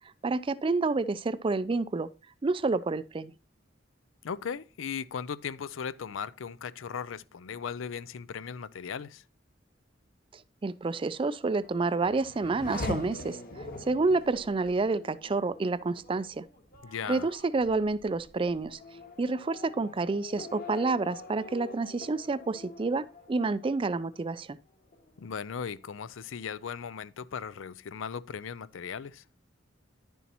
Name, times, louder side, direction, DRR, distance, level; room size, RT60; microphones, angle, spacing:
voice 1, 0.2-2.1 2.4-3.3 10.3-16.5 17.1-18.8 19.2-24.6, right 3 dB, 25° right, 0.4 m, -29 dB
voice 2, 4.2-9.2 16.8-17.3 25.2-29.2, left 6 dB, 85° left, 0.5 m, -37 dB
Race car auto racing / Accelerating revving vroom, 11.3-24.5 24.9-25.6, left 2 dB, 50° left, 1.9 m, -44 dB
10.5 x 7.0 x 2.9 m
head